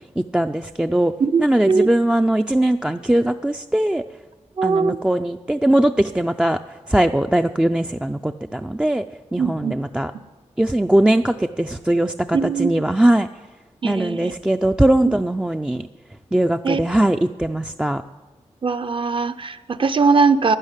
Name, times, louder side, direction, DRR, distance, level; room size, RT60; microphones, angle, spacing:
voice 1, 0.2-1.1 1.4-4.0 4.6-6.6 6.9-9.0 9.3-10.1 10.6-13.3 13.8-15.9 16.3-18.0, right 1 dB, 10° right, 6 dB, 0.4 m, -20 dB
voice 2, 1.2-1.9 4.6-5.0 9.4-9.7 12.3-12.7 13.8-14.3 15.0-15.1 16.6-16.8 18.6-20.6, right 4 dB, 45° right, 11 dB, 0.7 m, -20 dB
12.0 x 11.5 x 9.8 m, 1.2 s
wide cardioid pair, 120°, 12 cm